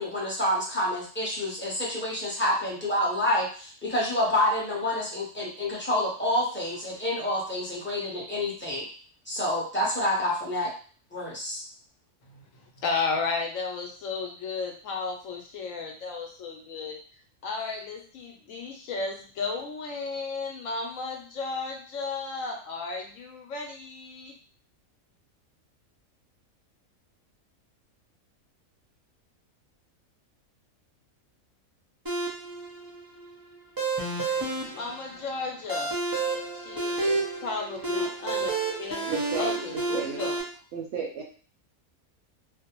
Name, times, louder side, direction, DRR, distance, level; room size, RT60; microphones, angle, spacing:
voice 1, 0.0-8.8 9.3-10.7 11.1-11.6, left 1 dB, 10° left, -6 dB, 0.6 m, -28 dB
voice 2, 12.5-17.0 17.4-24.3 34.7-35.9 36.5-38.5 38.8-39.1 39.4-40.4, left 4 dB, 70° left, 1 dB, 1.0 m, -33 dB
sound 1, 32.1-40.4, right 3 dB, 30° right, 0.4 m, -30 dB
voice 3, 38.0-38.4 39.1-40.2 40.7-41.2, right 5 dB, 65° right, -1 dB, 0.8 m, -35 dB
2.4 x 2.1 x 2.9 m, 0.42 s
omnidirectional pair, 1.5 m